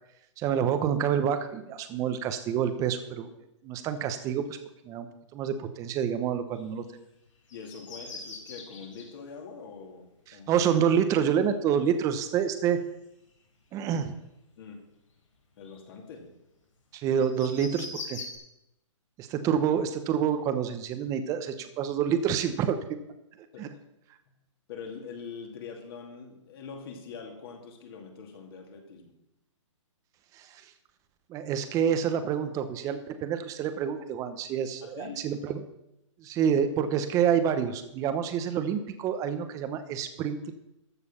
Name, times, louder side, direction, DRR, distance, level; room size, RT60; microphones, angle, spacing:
voice 1, 0.4-3.3 3.6-4.5 4.8-5.1 5.3-6.8 10.3-12.8 13.7-14.1 16.9-18.2 19.2-22.8 23.6-23.7 30.4-30.5 31.3-35.6 36.2-40.5, right 8 dB, 20° right, 10 dB, 0.9 m, -27 dB
sound 1, 6.5-6.8 7.3-9.1 10.8-10.9 12.7-13.3 13.6-14.0 14.6-14.7 15.1-16.1 17.2-18.4, left 3 dB, 75° left, 4.7 m, -42 dB
voice 2, 7.5-10.6 14.6-14.8 15.6-16.3 23.5-23.8 24.7-29.1 34.8-35.3, left 5 dB, 45° left, 2 dB, 2.4 m, -43 dB
13.5 x 6.8 x 5.7 m, 0.85 s
hypercardioid pair, 150°, 17 cm